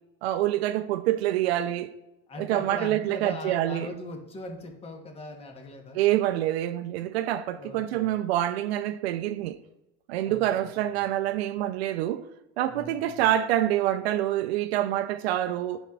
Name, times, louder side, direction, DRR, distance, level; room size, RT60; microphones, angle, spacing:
voice 1, 0.2-1.9 2.4-3.9 5.9-9.6 10.1-12.2 12.6-15.8, right 13 dB, 80° right, 0.5 m, -26 dB
voice 2, 2.3-6.0 7.5-8.1 10.2-10.7 12.7-13.2, left 2 dB, 20° left, 1.0 m, -40 dB
9.9 x 5.1 x 2.3 m
supercardioid pair, 140°, 31 cm